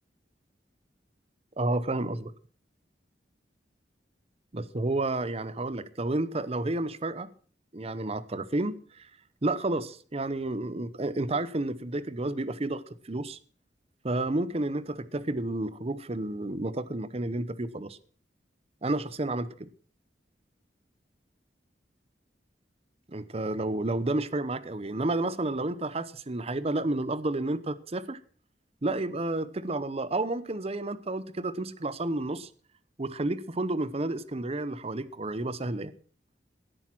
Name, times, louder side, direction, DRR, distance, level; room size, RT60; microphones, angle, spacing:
voice 1, 1.6-2.3 4.5-7.3 7.7-9.1 9.4-13.4 14.0-18.0 18.8-19.7 23.1-28.2 28.8-32.5 33.0-35.9, right 2 dB, 35° right, 0.8 m, -31 dB
16.5 x 9.0 x 6.0 m
head